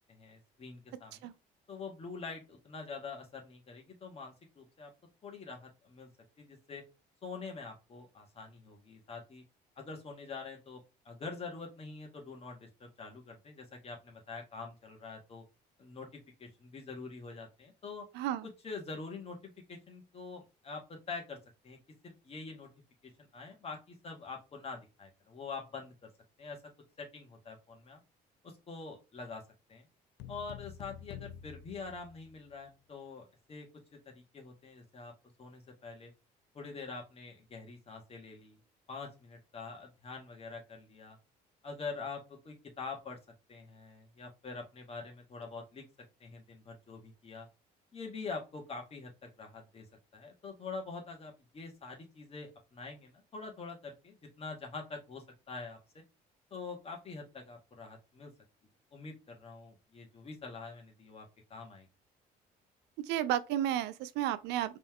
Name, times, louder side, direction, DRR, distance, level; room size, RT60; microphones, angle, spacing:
voice 1, 0.1-1.3 1.7-4.9 5.2-6.1 6.4-6.8 7.2-9.4 9.8-10.8 11.1-15.4 15.8-18.1 18.4-21.4 21.6-21.8 22.0-22.7 23.0-26.1 26.4-26.6 27.0-28.0 28.4-29.4 29.7-29.9 30.3-33.7 34.1-35.1 35.4-36.1 36.5-38.6 38.9-41.2 41.6-43.2 43.5-45.8 46.2-47.5 47.9-49.9 50.1-55.8 56.5-58.3 58.9-61.9, left 4 dB, 35° left, 1.9 m, -45 dB
sound 1, 30.2-32.7, left 9 dB, 85° left, 0.5 m, -48 dB
voice 2, 63.1-64.8, right 11 dB, 90° right, 0.6 m, -32 dB
4.1 x 3.8 x 3.2 m
cardioid pair, 110°, 17 cm